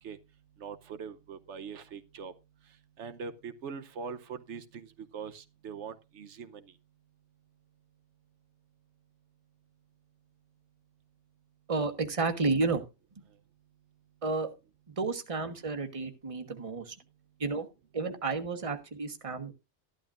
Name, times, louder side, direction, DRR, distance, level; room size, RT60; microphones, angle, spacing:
voice 1, 0.0-6.8 13.3-13.4 17.0-17.1, right 6 dB, 85° right, 1.2 m, -43 dB
voice 2, 11.7-12.8 14.2-14.5 15.0-16.9 17.4-17.7 17.9-19.5, right 3 dB, 30° right, 1.3 m, -31 dB
14.0 x 11.5 x 2.5 m
omnidirectional pair, 1.2 m